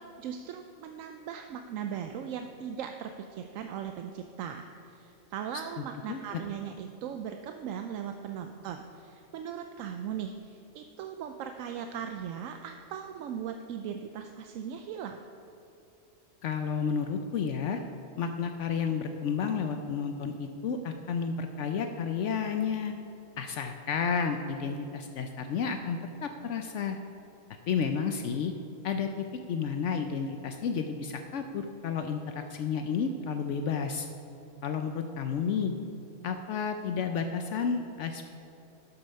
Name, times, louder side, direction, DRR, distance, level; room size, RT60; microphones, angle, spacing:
voice 1, 0.0-15.2, right 8 dB, 85° right, 5 dB, 1.0 m, -39 dB
voice 2, 6.1-6.4 16.4-17.8 18.2-22.9 23.4-27.0 27.7-28.5 28.8-34.1 34.6-35.7 36.2-38.3, left 6 dB, 70° left, 6 dB, 0.9 m, -31 dB
12.5 x 6.8 x 5.6 m, 2.7 s
omnidirectional pair, 1.3 m